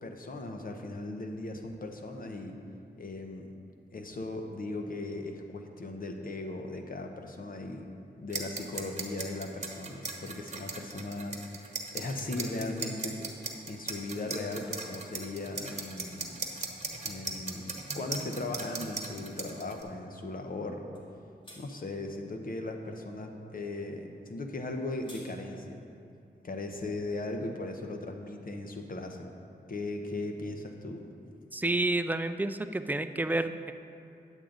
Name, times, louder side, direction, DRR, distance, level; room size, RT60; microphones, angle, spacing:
voice 1, 0.0-2.6 3.0-3.5 3.9-7.9 8.2-13.2 13.7-16.4 17.0-20.9 21.6-25.9 26.4-29.3 29.7-31.0, left 2 dB, 55° left, 4 dB, 0.9 m, -38 dB
sound 1, 8.3-19.8, right 3 dB, 40° right, 1.1 m, -38 dB
sound 2, 20.9-21.1 21.4-21.6 24.6-25.3, left 1 dB, 30° left, 2.1 m, -50 dB
voice 2, 31.5-33.7, right 2 dB, 10° right, 10 dB, 0.4 m, -30 dB
9.1 x 8.3 x 3.9 m, 2.6 s
cardioid pair, 60°, 18 cm